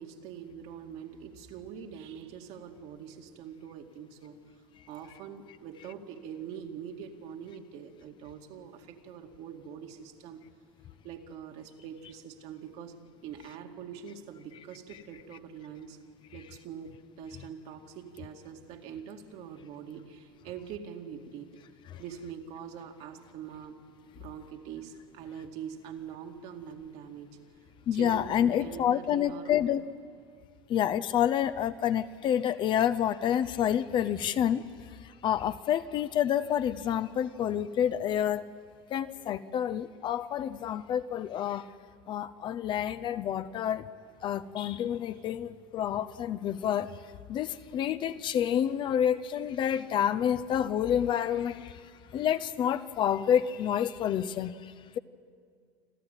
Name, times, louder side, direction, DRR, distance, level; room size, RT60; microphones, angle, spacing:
voice 1, 0.0-4.4 4.9-10.4 11.0-13.0 13.2-16.0 16.3-21.5 22.0-23.8 24.2-27.4 27.9-29.5, right 8 dB, 60° right, 2.1 m, -44 dB
voice 2, 27.9-29.8 30.7-34.6 35.0-38.4 38.9-41.7 42.1-43.9 44.2-47.0 47.3-51.8 52.1-55.0, left 9 dB, 40° left, 0.7 m, -28 dB
28.0 x 13.0 x 9.1 m
supercardioid pair, 120°, 12 cm